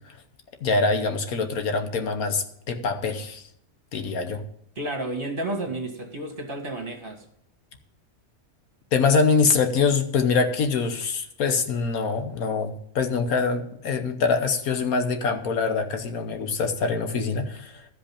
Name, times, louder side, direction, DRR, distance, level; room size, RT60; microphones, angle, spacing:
voice 1, 0.6-3.4 3.9-4.4 8.9-17.9, left 4 dB, 70° left, 6 dB, 1.4 m, -24 dB
voice 2, 4.8-7.2, right 1 dB, 35° right, 3 dB, 1.9 m, -31 dB
12.5 x 5.3 x 8.4 m, 0.71 s
omnidirectional pair, 1.6 m